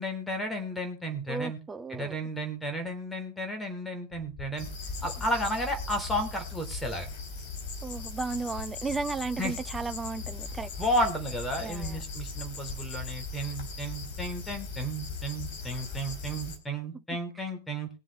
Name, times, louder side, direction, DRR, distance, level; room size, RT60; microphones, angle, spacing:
voice 1, 0.0-1.6 1.9-4.7 5.0-7.1 9.4-9.5 10.8-17.9, equal, 5° left, 3.4 m, -33 dB
voice 2, 1.3-2.2 7.8-10.7 11.6-12.0, right 3 dB, 15° right, 0.7 m, -34 dB
sound 1, 4.1-16.6, left 4 dB, 25° left, 3.2 m, -46 dB
sound 2, 4.6-16.6, left 4 dB, 45° left, 3.6 m, -39 dB
21.0 x 7.3 x 3.2 m
figure-of-eight pair, 90°, 0 cm